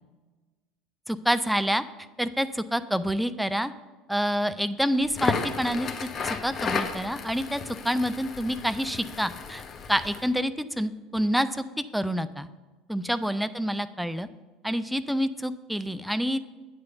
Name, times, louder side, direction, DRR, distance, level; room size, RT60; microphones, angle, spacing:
voice 1, 1.1-1.8 2.2-3.7 4.1-9.6 9.9-12.5 12.9-14.3 14.6-16.4, equal, ahead, 12 dB, 0.4 m, -27 dB
Crackle, 5.0-10.3, left 5 dB, 35° left, 0.7 m, -33 dB
8.2 x 4.8 x 6.6 m, 1.3 s
figure-of-eight pair, 65°, 0 cm